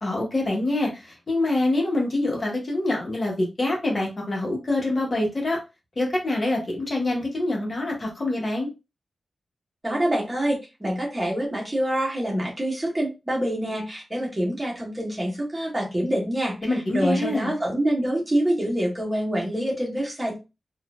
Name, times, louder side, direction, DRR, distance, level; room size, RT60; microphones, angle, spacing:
voice 1, 0.0-5.6 6.0-8.7 16.6-17.6, left 2 dB, 35° left, -1 dB, 1.4 m, -25 dB
voice 2, 9.8-20.4, right 1 dB, 15° right, -3 dB, 1.6 m, -26 dB
4.2 x 2.6 x 2.5 m, 0.26 s
wide cardioid pair, 130°, 0 cm